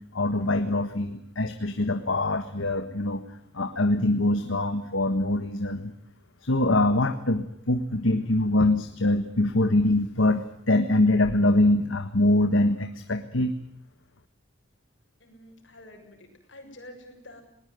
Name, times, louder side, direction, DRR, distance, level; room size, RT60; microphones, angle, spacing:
voice 1, 0.1-3.2 3.5-5.9 6.4-13.5, left 1 dB, 90° left, 8 dB, 1.6 m, -24 dB
voice 2, 15.2-17.4, left 1 dB, 70° left, 3 dB, 6.9 m, -48 dB
20.5 x 19.5 x 9.5 m, 0.74 s
head